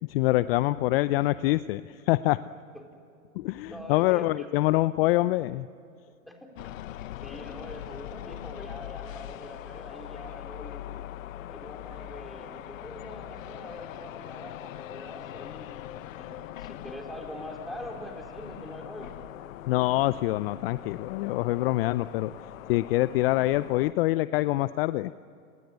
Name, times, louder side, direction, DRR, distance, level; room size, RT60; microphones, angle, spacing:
voice 1, 0.0-2.4 3.4-5.7 19.7-22.3 22.7-25.1, left 17 dB, 45° left, 16 dB, 0.6 m, -25 dB
voice 2, 3.7-4.5 6.2-6.5 7.2-10.9 11.5-19.1, equal, ahead, 1 dB, 4.4 m, -43 dB
sound 1, 6.6-23.9, left 13 dB, 65° left, 1.0 m, -42 dB
30.0 x 20.5 x 8.1 m, 2.6 s
hypercardioid pair, 120°, 42 cm